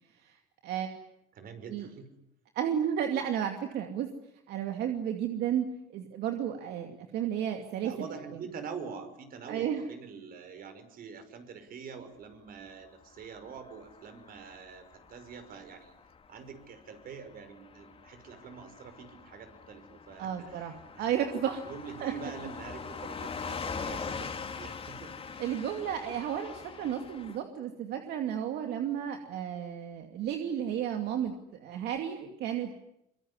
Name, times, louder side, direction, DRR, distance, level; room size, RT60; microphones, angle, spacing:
voice 1, 0.1-1.0 1.7-1.9 2.5-4.1 4.5-5.7 5.9-8.1 9.5-9.8 20.2-21.6 22.0-22.1 25.4-32.7, right 9 dB, 75° right, 5 dB, 2.6 m, -33 dB
voice 2, 1.4-2.1 7.8-15.9 16.3-21.1 21.6-25.1, right 6 dB, 60° right, 9 dB, 5.4 m, -45 dB
Car passing by / Truck, 13.0-27.4, left 5 dB, 35° left, 3.2 m, -43 dB
24.5 x 23.5 x 9.9 m, 0.81 s
cardioid pair, 110°, 17 cm